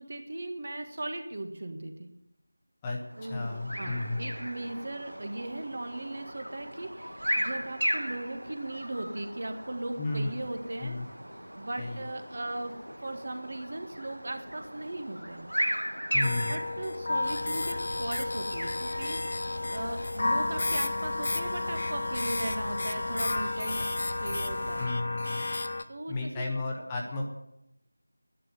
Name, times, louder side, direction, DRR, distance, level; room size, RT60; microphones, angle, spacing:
voice 1, 0.0-2.1 3.2-3.5 3.8-10.9 11.5-12.7 13.0-15.5 16.5-19.2 19.7-23.8 24.2-24.9 25.9-26.5, right 2 dB, 45° right, 6 dB, 1.7 m, -38 dB
sound 1, 3.1-20.8, equal, 85° right, 1.4 m, -37 dB
voice 2, 3.3-4.4 10.0-10.3 10.8-11.1 11.8-12.0 16.1-16.5 24.3-24.4 24.8-25.4 26.1-27.2, left 2 dB, 10° left, 0 dB, 1.2 m, -33 dB
sound 2, 16.2-25.8, left 2 dB, 40° left, 0.9 m, -32 dB
sound 3, 17.2-24.9, equal, 85° left, 3.8 m, -42 dB
11.0 x 9.7 x 9.5 m, 0.82 s
figure-of-eight pair, 170°, 0 cm